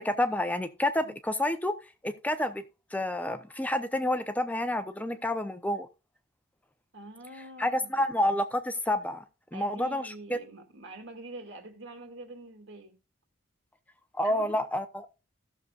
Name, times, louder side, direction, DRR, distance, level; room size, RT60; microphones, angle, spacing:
voice 1, 0.0-1.7 2.0-2.6 2.9-5.9 7.6-9.2 9.5-10.4 14.2-15.1, left 1 dB, 5° left, 0.6 m, -29 dB
voice 2, 6.9-8.2 9.5-12.9 14.2-14.6, right 2 dB, 55° right, 2.3 m, -45 dB
16.0 x 6.7 x 2.4 m
head